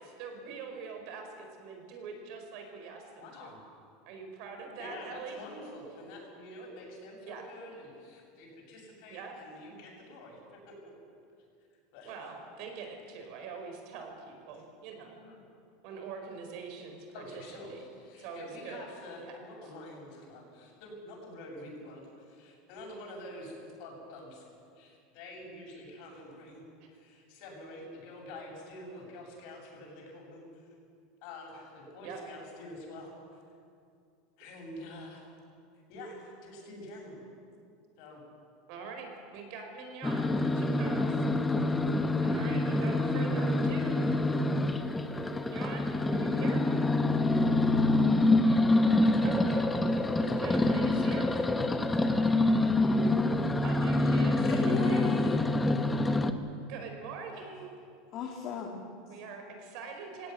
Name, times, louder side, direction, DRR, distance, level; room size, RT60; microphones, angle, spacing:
voice 1, 0.0-3.5 4.0-5.4 7.3-7.4 9.1-9.3 12.1-15.2 15.8-17.1 17.3-17.4 17.7-17.8 18.2-18.8 19.2-19.4 32.0-32.2 38.7-39.1 39.3-41.2 42.2-44.1 45.3-46.6 47.3-47.5 48.3-49.6 50.4-51.3 53.6-55.0 56.7-57.7 59.1-60.3, right 5 dB, 50° right, 4 dB, 4.8 m, -44 dB
voice 2, 3.2-3.6 4.8-10.4 10.7-10.9 11.9-12.2 15.0-15.4 17.1-23.5 23.8-24.4 24.8-26.6 26.9-30.6 31.2-33.2 34.4-35.2 35.9-37.2 38.0-38.2, left 1 dB, 55° left, 0 dB, 7.7 m, -47 dB
sound 1, 40.0-56.3, left 2 dB, 10° left, 1.0 m, -26 dB
voice 3, 54.4-55.4 58.1-59.2, left 7 dB, 40° left, 1 dB, 1.9 m, -37 dB
21.5 x 17.0 x 9.7 m, 2.4 s
supercardioid pair, 160°, 0 cm